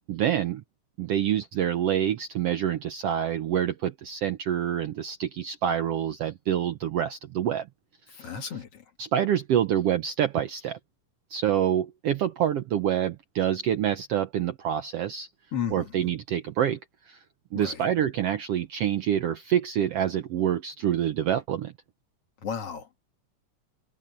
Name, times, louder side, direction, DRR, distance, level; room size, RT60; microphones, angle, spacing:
voice 1, 0.1-0.6 1.0-7.7 8.2-8.3 9.0-10.8 11.3-15.3 15.7-16.8 17.1-17.2 17.5-21.7, right 10 dB, 70° right, 1.5 m, -26 dB
voice 2, 8.2-8.8 15.5-16.1 17.5-17.9 22.4-23.0, left 7 dB, 50° left, 2.6 m, -34 dB
omnidirectional pair, 3.6 m